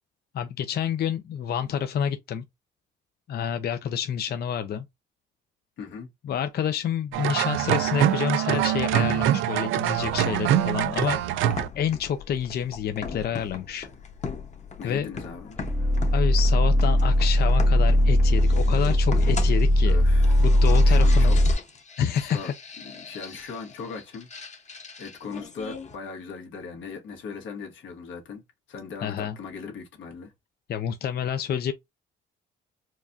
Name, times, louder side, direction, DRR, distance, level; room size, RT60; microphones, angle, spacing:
voice 1, 0.3-2.4 3.3-4.9 6.2-11.2 11.7-13.9 14.8-15.1 16.1-20.0 20.4-21.4 22.0-22.5 29.0-29.4 30.7-31.7, left 8 dB, 55° left, 0.5 m, -28 dB
voice 2, 5.8-6.1 14.8-15.6 19.8-21.4 22.1-22.5 22.8-24.3 25.0-28.4 28.7-30.3, left 5 dB, 75° left, 1.5 m, -39 dB
sound 1, 7.1-11.7, right 11 dB, 85° right, 0.4 m, -24 dB
sound 2, 9.9-26.0, left 5 dB, 35° left, 1.0 m, -39 dB
sound 3, 15.6-21.5, left 1 dB, 5° left, 0.5 m, -19 dB
4.5 x 2.4 x 2.6 m
cardioid pair, 90°, 20 cm